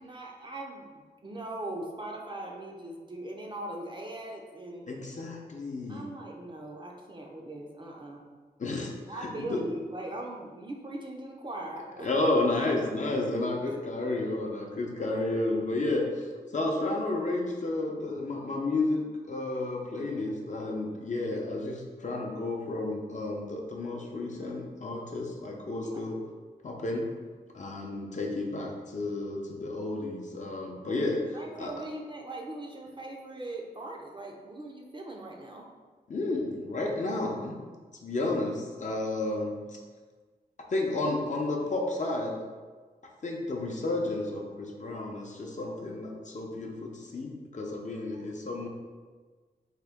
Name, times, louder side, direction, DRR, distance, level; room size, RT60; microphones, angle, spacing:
voice 1, 0.0-4.8 5.9-8.2 9.1-12.3 13.7-13.8 14.1-14.2 25.8-26.1 31.3-35.7 48.1-48.3, right 2 dB, 30° right, 0 dB, 0.5 m, -40 dB
voice 2, 4.9-6.0 8.6-8.9 9.2-9.6 12.0-16.2 16.5-26.2 26.6-27.0 27.5-31.7 36.1-37.6 38.0-39.5 40.7-42.4 43.2-48.7, left 2 dB, 50° left, -1 dB, 0.6 m, -31 dB
3.7 x 2.2 x 3.5 m, 1.4 s
wide cardioid pair, 75°, 17 cm